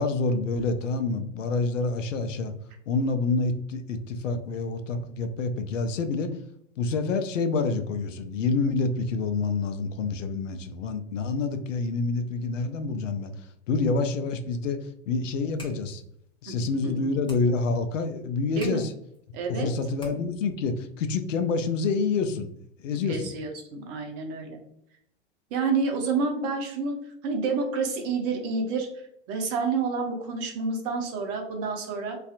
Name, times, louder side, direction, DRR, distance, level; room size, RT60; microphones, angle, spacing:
voice 1, 0.0-2.5 2.9-6.4 6.8-13.3 13.7-16.0 16.4-18.9 19.6-22.5 22.8-23.2, left 3 dB, 80° left, 9 dB, 0.5 m, -27 dB
sound 1, 15.4-20.5, left 1 dB, 15° left, 0.9 m, -50 dB
voice 2, 19.3-19.7 23.1-24.6 25.5-28.9 29.3-32.2, right 4 dB, 40° right, 3 dB, 0.7 m, -29 dB
2.5 x 2.4 x 2.4 m, 0.72 s
hypercardioid pair, 100°, 37 cm